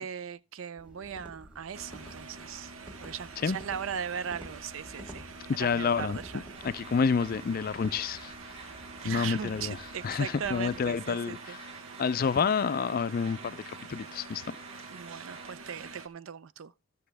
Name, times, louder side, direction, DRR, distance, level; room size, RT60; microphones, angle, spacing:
voice 1, 0.0-2.7 3.0-5.3 5.6-6.4 9.0-11.6 14.9-16.7, right 7 dB, 70° right, 0.5 m, -38 dB
sound 1, 0.8-10.9, equal, 5° right, 1.8 m, -51 dB
sound 2, 1.7-16.1, right 4 dB, 90° right, 0.9 m, -47 dB
voice 2, 5.5-6.2 6.6-8.3 9.0-9.8 10.0-11.6 12.0-14.6, left 5 dB, 45° left, 0.4 m, -29 dB
sound 3, 6.5-15.5, right 4 dB, 30° right, 1.2 m, -50 dB
13.0 x 6.7 x 3.4 m
head